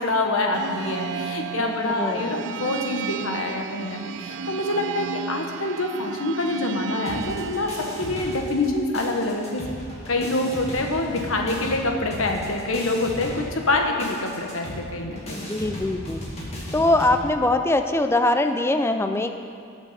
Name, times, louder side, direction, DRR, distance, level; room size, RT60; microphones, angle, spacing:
voice 1, 0.0-7.7 8.0-9.6 10.1-15.5, left 2 dB, 80° left, 2 dB, 1.3 m, -26 dB
sound 1, 0.5-8.5, right 7 dB, 60° right, 0.3 m, -34 dB
voice 2, 1.6-2.4 15.3-16.2 16.7-19.4, left 2 dB, 10° left, 7 dB, 0.4 m, -22 dB
sound 2, 7.1-8.7 8.9-17.2, equal, 30° left, 2.3 m, -36 dB
18.5 x 7.0 x 4.3 m, 2.3 s
head